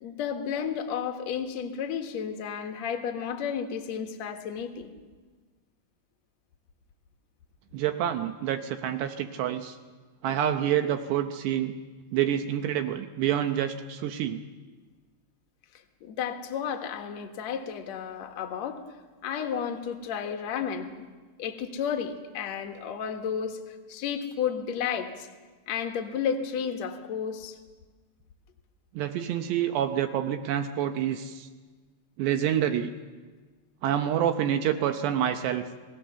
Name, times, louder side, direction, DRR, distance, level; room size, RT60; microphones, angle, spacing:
voice 1, 0.0-4.9 16.0-18.8 19.2-21.0 21.4-25.3 25.7-27.6, left 7 dB, 65° left, 5 dB, 1.7 m, -32 dB
voice 2, 7.7-9.8 10.2-11.7 12.1-14.4 29.0-31.5 32.2-32.9 33.8-35.7, right 10 dB, 75° right, 7 dB, 2.8 m, -27 dB
29.0 x 18.5 x 6.9 m, 1.4 s
omnidirectional pair, 5.5 m